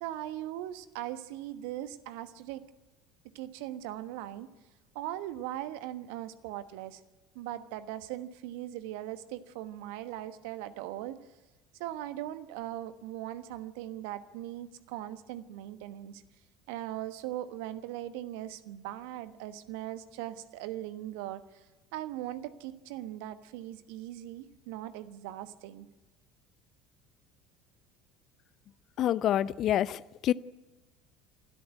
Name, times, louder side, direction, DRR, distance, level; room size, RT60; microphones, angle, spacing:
voice 1, 0.0-2.6 3.3-4.5 4.9-7.0 7.3-11.2 11.8-16.2 16.7-21.6 21.9-25.9, right 13 dB, 65° right, 12 dB, 1.2 m, -39 dB
voice 2, 29.0-30.3, left 11 dB, 50° left, 18 dB, 0.6 m, -27 dB
27.0 x 13.0 x 9.5 m, 1.2 s
figure-of-eight pair, 65°, 0 cm